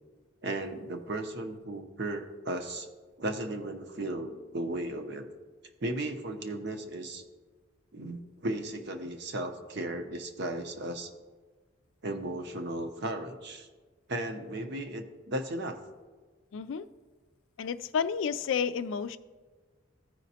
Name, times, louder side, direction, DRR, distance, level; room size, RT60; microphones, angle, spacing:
voice 1, 0.4-2.9 3.2-5.3 5.8-7.2 7.9-11.1 12.0-13.7 14.1-15.8, right 1 dB, 60° right, 6 dB, 0.7 m, -35 dB
voice 2, 16.5-16.9 17.6-19.2, left 6 dB, 75° left, 12 dB, 0.3 m, -31 dB
14.5 x 5.1 x 2.8 m, 1.4 s
head